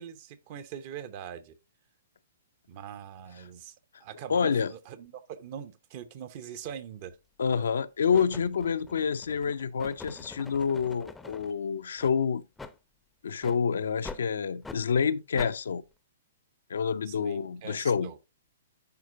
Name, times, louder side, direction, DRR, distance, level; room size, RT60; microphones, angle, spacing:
voice 1, 0.0-1.5 2.7-3.7 4.0-7.2 17.1-18.2, right 9 dB, 45° right, 0.8 m, -42 dB
voice 2, 4.3-4.7 7.4-12.4 13.2-15.8 16.7-18.1, left 6 dB, 70° left, 0.5 m, -28 dB
sound 1, 6.6-6.8 7.5-7.8 8.1-11.5 12.0-12.1 12.6-12.8 13.4-13.6 14.0-14.2 14.6-14.8 15.4-15.5, left 3 dB, 5° left, 0.6 m, -45 dB
10.5 x 4.3 x 2.6 m
figure-of-eight pair, 120°, 0 cm